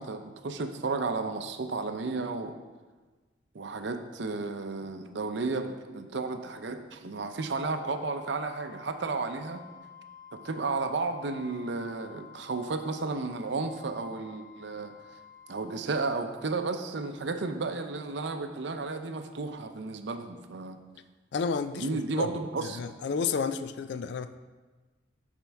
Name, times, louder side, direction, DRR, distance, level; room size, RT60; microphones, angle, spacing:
voice 1, 0.0-2.6 3.5-9.6 10.3-15.0 15.5-20.8 21.7-22.8, right 3 dB, 65° right, 0.5 m, -33 dB
Wind instrument woodwind instrument, 7.2-15.8, left 8 dB, 20° right, 2.0 m, -51 dB
voice 2, 21.3-22.3 22.7-24.4, left 5 dB, 60° left, 0.3 m, -31 dB
11.5 x 4.4 x 3.4 m
head